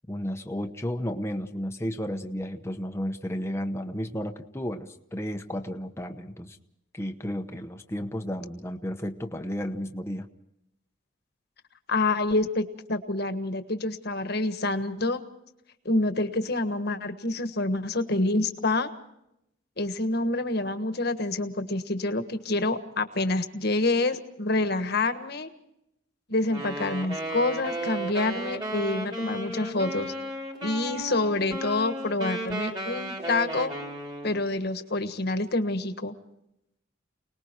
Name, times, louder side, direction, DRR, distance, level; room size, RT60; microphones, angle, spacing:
voice 1, 0.1-6.6 6.9-10.3, equal, 15° left, 5 dB, 1.0 m, -33 dB
voice 2, 11.9-15.2 15.8-18.9 19.8-25.5 26.3-30.1 30.6-33.7 34.2-36.1, left 2 dB, 50° left, 9 dB, 1.4 m, -27 dB
Wind instrument woodwind instrument, 26.4-34.4, right 1 dB, 20° right, 3.0 m, -34 dB
29.0 x 19.5 x 4.5 m, 0.81 s
head